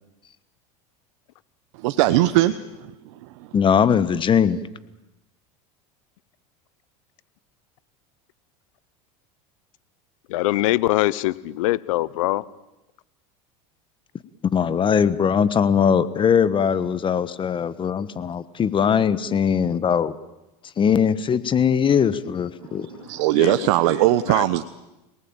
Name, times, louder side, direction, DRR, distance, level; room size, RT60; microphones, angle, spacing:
voice 1, 1.8-2.5 22.7-24.6, right 16 dB, 75° right, 12 dB, 1.1 m, -19 dB
voice 2, 3.5-4.6 14.5-20.1 20.8-22.9, left 7 dB, 30° left, 15 dB, 1.4 m, -20 dB
voice 3, 10.3-12.4 22.7-22.9 23.4-23.9 24.3-24.5, left 18 dB, 80° left, 19 dB, 1.0 m, -23 dB
27.5 x 19.0 x 9.0 m, 0.97 s
supercardioid pair, 105°, 17 cm